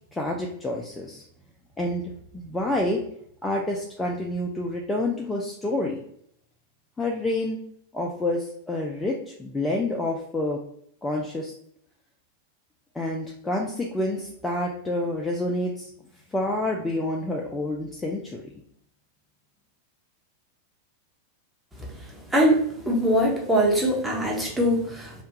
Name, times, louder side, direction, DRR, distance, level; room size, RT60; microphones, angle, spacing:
voice 1, 0.1-1.2 1.8-3.0 3.4-6.0 7.0-7.6 7.9-10.6 11.0-11.5 13.0-15.9 16.3-18.4, left 1 dB, 10° left, 0 dB, 0.3 m, -28 dB
voice 2, 22.3-25.1, equal, 5° right, -2 dB, 0.7 m, -22 dB
2.4 x 2.2 x 2.8 m, 0.68 s
figure-of-eight pair, 90°, 0 cm